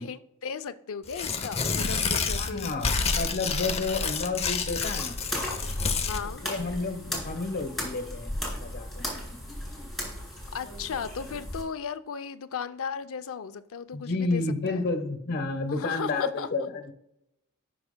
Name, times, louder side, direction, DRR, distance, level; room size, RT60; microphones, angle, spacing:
voice 1, 0.0-3.0 6.1-6.4 10.5-14.8 15.7-16.7, left 6 dB, 65° left, 11 dB, 0.5 m, -36 dB
Tearing, 1.1-6.2, left 4 dB, 30° left, 0.7 m, -29 dB
voice 2, 2.3-5.2 6.4-9.0 13.9-16.9, left 3 dB, 45° left, 7 dB, 1.1 m, -31 dB
sound 1, 4.8-11.6, left 1 dB, ahead, 3.4 m, -36 dB
17.5 x 5.9 x 2.2 m, 0.81 s
head